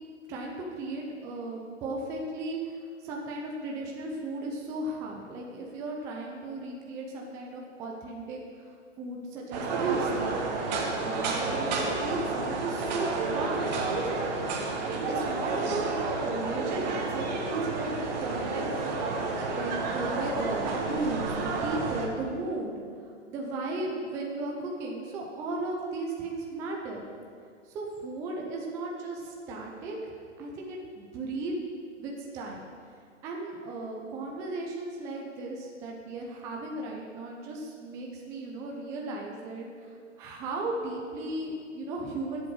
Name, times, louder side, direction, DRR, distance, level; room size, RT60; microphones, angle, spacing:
voice 1, 0.3-2.7 3.0-14.1 15.1-18.9 19.5-22.8 23.3-27.1 27.7-30.0 30.4-31.5 32.0-32.6 33.2-39.7 40.2-42.5, right 2 dB, 10° right, -1 dB, 0.5 m, -36 dB
sound 1, 9.5-22.1, right 3 dB, 35° right, 1.8 m, -30 dB
11.0 x 7.9 x 6.2 m, 2.1 s
hypercardioid pair, 145°, 37 cm